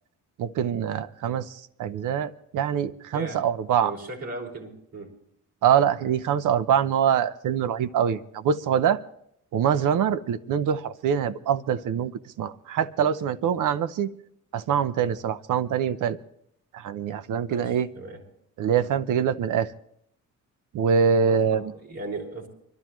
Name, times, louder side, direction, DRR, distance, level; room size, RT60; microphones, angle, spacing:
voice 1, 0.4-1.5 1.8-3.9 5.6-9.0 9.5-12.1 12.4-14.1 14.5-16.2 16.7-17.9 18.6-19.7 20.7-21.6, right 8 dB, 85° right, 13 dB, 0.8 m, -24 dB
voice 2, 3.1-3.5 3.8-5.2 17.5-18.2 21.2-22.5, right 2 dB, 55° right, -1 dB, 5.2 m, -37 dB
24.5 x 13.0 x 3.0 m, 0.71 s
cardioid pair, 115°, 31 cm